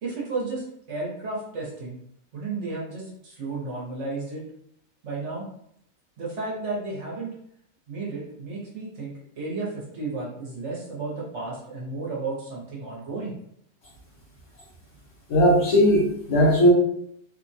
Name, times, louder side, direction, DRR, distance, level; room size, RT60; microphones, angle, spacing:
voice 1, 0.0-2.0 2.3-4.4 5.0-5.4 6.2-7.3 7.9-13.3, right 3 dB, 50° right, -5 dB, 1.0 m, -33 dB
voice 2, 15.3-16.7, equal, 70° left, -6 dB, 1.1 m, -18 dB
3.1 x 2.1 x 2.6 m, 0.71 s
omnidirectional pair, 1.9 m